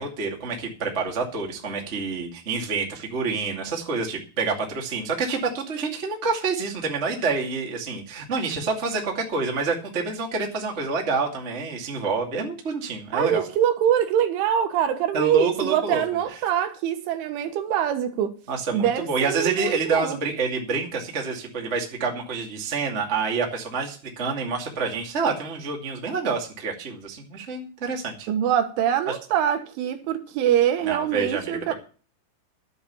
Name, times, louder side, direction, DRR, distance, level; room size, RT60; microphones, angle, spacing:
voice 1, 0.0-13.5 15.1-16.0 16.3-16.4 18.5-28.3 29.1-29.2 30.8-31.7, right 4 dB, 40° right, 0.9 m, -28 dB
voice 2, 13.1-18.3 18.7-20.2 28.3-31.7, right 10 dB, 75° right, 3.6 m, -24 dB
11.5 x 8.1 x 6.9 m
omnidirectional pair, 5.8 m